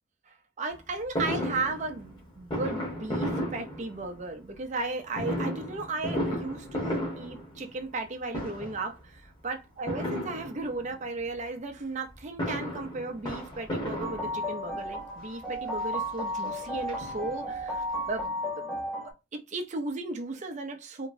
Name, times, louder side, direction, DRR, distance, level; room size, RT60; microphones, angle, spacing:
voice 1, 0.3-18.8 19.3-21.1, right 3 dB, 35° right, 0.5 m, -35 dB
Fireworks, 1.2-4.3 5.1-8.0 8.3-8.9 9.9-11.0 12.1-14.8 15.5-15.6 15.9-16.0 16.3-17.6 17.9-18.0 18.2-18.3, equal, 20° left, 1.1 m, -34 dB
sound 1, 14.0-19.1, equal, 5° left, 0.7 m, -34 dB
2.9 x 2.8 x 2.5 m
head